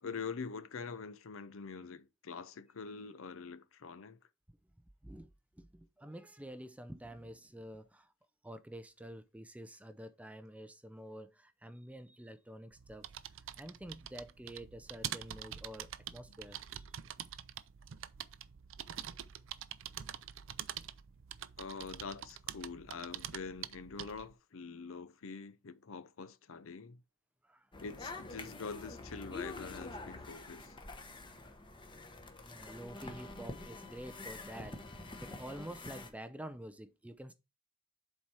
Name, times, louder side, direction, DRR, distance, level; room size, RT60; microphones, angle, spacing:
voice 1, 0.0-4.2 21.6-27.0 27.8-30.8, left 5 dB, 70° left, 0.6 m, -45 dB
voice 2, 5.5-8.1 8.4-13.1 13.6-17.0 27.4-27.7 32.4-37.3, right 1 dB, 5° right, 0.4 m, -48 dB
sound 1, 12.7-24.3, right 10 dB, 65° right, 0.5 m, -45 dB
sound 2, 27.7-36.1, left 2 dB, 20° left, 1.0 m, -47 dB
7.3 x 4.4 x 4.7 m
head